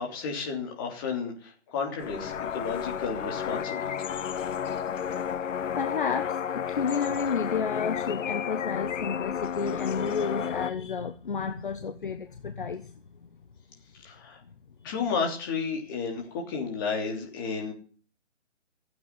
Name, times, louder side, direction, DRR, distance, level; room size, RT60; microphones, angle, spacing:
voice 1, 0.0-3.9 14.0-14.4 14.8-17.7, left 5 dB, 20° left, 0 dB, 3.2 m, -32 dB
sound 1, 2.0-10.7, left 8 dB, 90° left, 0.7 m, -32 dB
voice 2, 5.8-12.9, left 6 dB, 45° left, 8 dB, 1.2 m, -31 dB
15.5 x 8.6 x 9.9 m, 0.42 s
hypercardioid pair, 170°, 36 cm